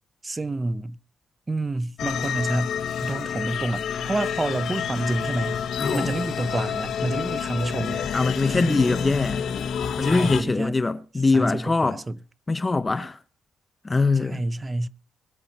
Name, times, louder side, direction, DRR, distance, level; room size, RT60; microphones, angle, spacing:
voice 1, 0.2-1.0 1.5-5.6 5.9-8.1 8.5-8.8 10.0-10.7 11.3-12.2 14.3-14.9, right 2 dB, 20° right, 0.7 m, -28 dB
sound 1, 2.0-10.4, left 7 dB, 70° left, 1.4 m, -29 dB
voice 2, 5.8-6.1 8.1-9.5 10.0-12.0 12.5-13.2 13.8-14.4, left 3 dB, 20° left, 0.7 m, -22 dB
22.0 x 7.5 x 4.2 m
cardioid pair, 120°, 0 cm